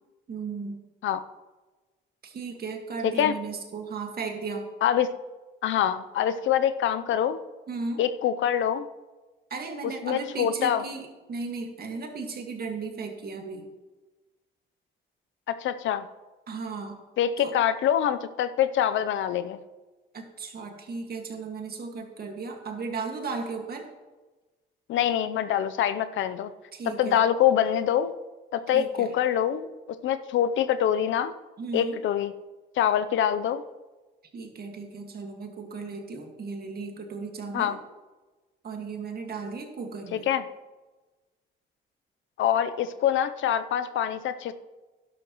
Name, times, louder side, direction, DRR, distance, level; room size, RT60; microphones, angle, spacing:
voice 1, 0.3-0.8 2.2-4.7 7.7-8.0 9.5-13.7 16.5-17.0 17.4-17.5 20.1-23.9 26.7-27.2 28.7-29.1 31.6-32.0 34.3-37.8 38.6-40.3, right 4 dB, 50° right, 3 dB, 1.9 m, -35 dB
voice 2, 3.0-3.3 4.8-5.1 5.6-7.4 8.0-8.9 9.8-10.8 15.5-16.1 17.2-19.6 24.9-26.5 26.9-28.1 28.5-29.7 30.0-31.3 31.7-32.3 32.8-33.6 37.5-37.8 40.1-40.4 42.4-44.5, left 10 dB, 75° left, 12 dB, 0.6 m, -25 dB
11.5 x 11.5 x 3.0 m, 1.2 s
cardioid pair, 90°, 20 cm